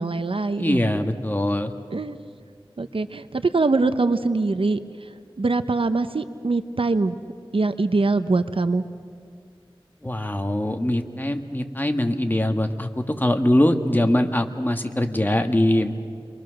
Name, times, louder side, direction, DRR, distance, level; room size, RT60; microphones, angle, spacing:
voice 1, 0.0-0.8 1.9-2.2 2.8-7.2 7.5-8.9, right 3 dB, 75° right, 11 dB, 0.7 m, -23 dB
voice 2, 0.6-1.7 10.0-15.9, left 1 dB, 20° left, 5 dB, 1.6 m, -22 dB
28.5 x 22.5 x 6.4 m, 2.2 s
wide cardioid pair, 45°, 9 cm